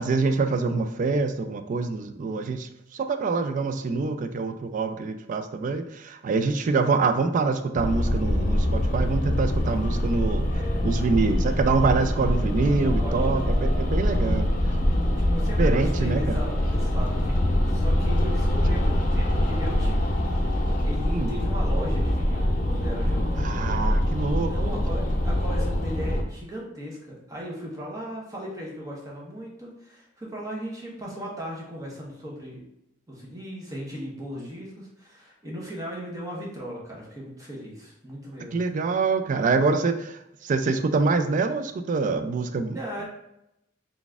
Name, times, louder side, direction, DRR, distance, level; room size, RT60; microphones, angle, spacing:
voice 1, 0.0-10.5 10.8-14.5 15.6-16.4 21.1-21.3 23.4-24.5 38.5-43.0, right 4 dB, 45° right, 9 dB, 0.3 m, -25 dB
sound 1, 7.8-26.2, left 1 dB, 45° left, 0.6 m, -24 dB
voice 2, 10.4-11.2 13.0-13.7 15.3-20.1 20.4-23.4 24.5-32.6 33.1-38.6 42.7-43.0, equal, 20° right, -3 dB, 1.0 m, -37 dB
3.9 x 3.5 x 2.4 m, 0.83 s
head